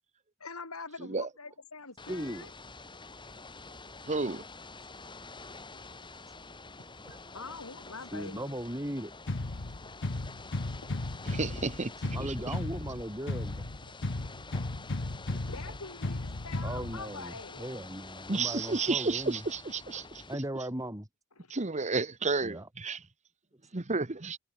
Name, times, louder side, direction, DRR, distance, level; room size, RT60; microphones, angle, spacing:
voice 1, 0.4-2.5 5.7-5.8 7.0-8.5 15.3-17.7 21.4-21.6, left 4 dB, 85° left, 6.0 m, -45 dB
Ocean / Boat Water vehicle, 2.0-20.4, left 3 dB, 20° left, 3.8 m, -48 dB
voice 2, 2.1-2.5 3.7-3.8 6.8-7.2 8.1-9.1 12.1-13.7 15.0-15.4 16.6-19.4 20.3-21.1 22.4-22.7, right 1 dB, 15° right, 7.3 m, -38 dB
voice 3, 4.1-4.4 11.3-11.9 12.2-12.3 18.3-20.0 21.5-23.0 23.7-24.4, right 3 dB, 35° right, 1.1 m, -31 dB
sound 1, 9.3-17.3, left 2 dB, 60° left, 1.2 m, -35 dB
head